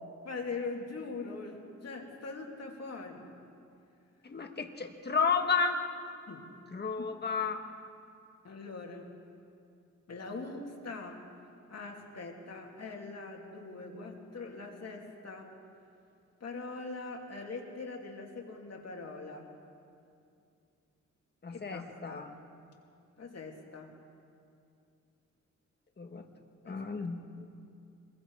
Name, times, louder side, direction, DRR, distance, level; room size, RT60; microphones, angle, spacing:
voice 1, 0.2-3.3 6.3-6.5 7.0-7.1 8.4-9.1 10.1-11.3 11.7-15.6 16.4-19.5 21.5-22.2 23.2-24.0 26.6-26.9, left 3 dB, 55° left, 1 dB, 2.8 m, -42 dB
voice 2, 4.2-5.9 6.7-7.7 21.4-22.3 26.0-26.2 26.7-27.5, left 5 dB, 35° left, 4 dB, 1.6 m, -32 dB
26.5 x 22.0 x 4.8 m, 2.5 s
wide cardioid pair, 130°, 30 cm